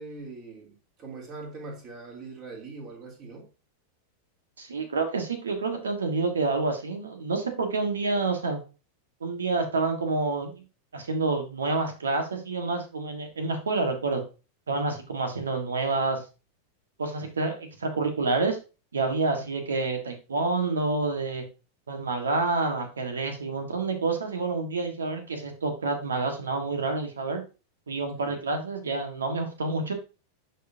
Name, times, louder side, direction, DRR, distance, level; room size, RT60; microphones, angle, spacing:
voice 1, 0.0-3.5 28.2-28.4, right 3 dB, 35° right, 3.2 m, -42 dB
voice 2, 4.6-8.6 9.2-10.6 10.9-14.2 14.7-16.2 17.0-18.6 18.9-21.4 21.9-27.4 27.9-29.9, right 3 dB, 70° right, 1.6 m, -28 dB
10.0 x 4.6 x 2.8 m
figure-of-eight pair, 90°, 0 cm